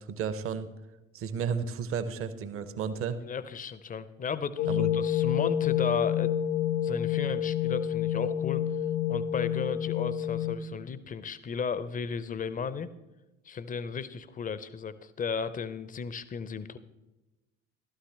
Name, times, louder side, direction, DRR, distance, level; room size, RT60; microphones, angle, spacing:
voice 1, 0.1-0.7 1.1-3.2 4.7-4.9, right 6 dB, 35° right, 13 dB, 0.8 m, -32 dB
voice 2, 3.3-6.3 6.8-8.6 9.1-12.9 13.5-16.8, left 6 dB, 20° left, 16 dB, 0.6 m, -34 dB
sound 1, 4.6-10.6, left 10 dB, 70° left, 0.8 m, -28 dB
12.5 x 12.0 x 3.4 m, 1.0 s
figure-of-eight pair, 55°, 37 cm